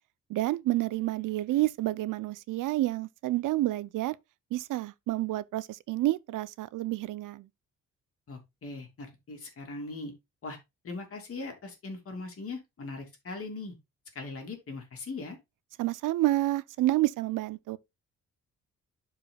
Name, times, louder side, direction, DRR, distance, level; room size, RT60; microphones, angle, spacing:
voice 1, 0.3-4.2 4.5-7.5 15.8-17.8, right 16 dB, 90° right, 0.6 m, -29 dB
voice 2, 8.3-10.1 10.4-10.6 10.8-13.7 14.1-15.4, left 3 dB, 45° left, 2.8 m, -40 dB
11.5 x 4.9 x 2.3 m
cardioid pair, 130°, 31 cm